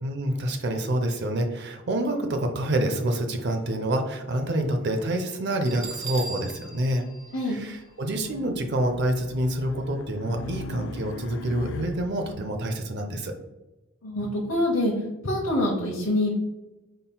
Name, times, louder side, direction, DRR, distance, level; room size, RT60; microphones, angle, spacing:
voice 1, 0.0-7.1 7.5-13.3, right 1 dB, 55° right, 5 dB, 0.6 m, -27 dB
Bell, 5.6-8.4, right 4 dB, 35° right, 1.0 m, -39 dB
Race car auto racing, 8.1-12.4, left 3 dB, 65° left, 0.3 m, -39 dB
voice 2, 14.0-14.9 15.2-16.3, left 1 dB, 85° left, -3 dB, 1.0 m, -25 dB
5.4 x 3.8 x 2.3 m, 1.1 s
head